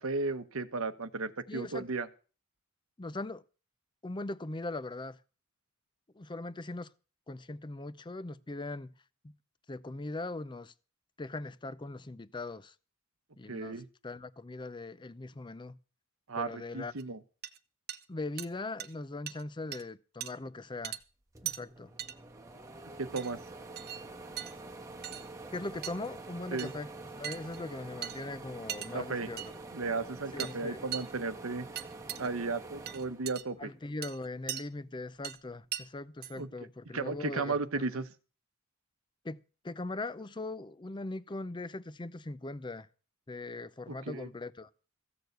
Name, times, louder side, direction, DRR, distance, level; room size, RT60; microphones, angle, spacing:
voice 1, 0.0-2.1 13.5-13.8 16.3-17.2 23.0-23.4 26.5-26.7 28.9-29.3 29.7-31.7 32.2-33.7 36.3-36.5 36.9-38.1 43.9-44.3, right 3 dB, 85° right, 1.0 m, -34 dB
voice 2, 1.5-1.8 3.0-3.4 4.0-5.2 6.1-6.9 7.3-8.9 9.2-9.3 9.7-10.7 11.2-12.7 13.4-15.8 16.4-16.9 18.1-21.0 21.4-21.9 25.5-26.9 27.2-29.5 30.3-30.8 33.6-38.0 39.2-42.9 43.3-44.7, left 2 dB, 20° left, 0.5 m, -40 dB
sound 1, 17.0-17.1 17.4-17.6 17.9-18.0 18.4-18.5 18.8-18.9 19.3-19.4 19.7-19.8 20.2-20.3 20.8-21.0 21.5-21.6 22.0-22.1 23.2-23.3 23.8-24.0 24.4-24.6 25.0-25.3 25.8-26.1 26.6-26.8 27.2-27.6 28.0-28.2 28.7-28.9 29.4-29.5 30.4-30.5 30.9-31.1 31.8-32.3 32.9-33.4 34.0-34.6 35.2-35.4 35.7-35.8 36.2-36.3, right 11 dB, 50° right, 0.7 m, -39 dB
sound 2, 21.0-21.1 21.3-33.9 34.4-35.5, right 2 dB, 15° right, 1.1 m, -47 dB
15.0 x 6.8 x 8.0 m
head